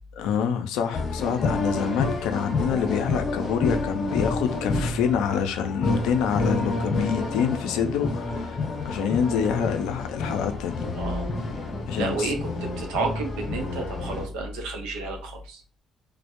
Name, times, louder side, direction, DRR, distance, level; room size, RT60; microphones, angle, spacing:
voice 1, 0.2-10.8 11.8-12.3, left 7 dB, 85° left, 0.4 m, -26 dB
sound 1, 0.9-14.3, left 2 dB, 55° left, 0.8 m, -29 dB
voice 2, 10.9-11.3 12.0-15.6, right 3 dB, 90° right, 0.6 m, -31 dB
2.2 x 2.0 x 2.9 m
supercardioid pair, 70°, 0 cm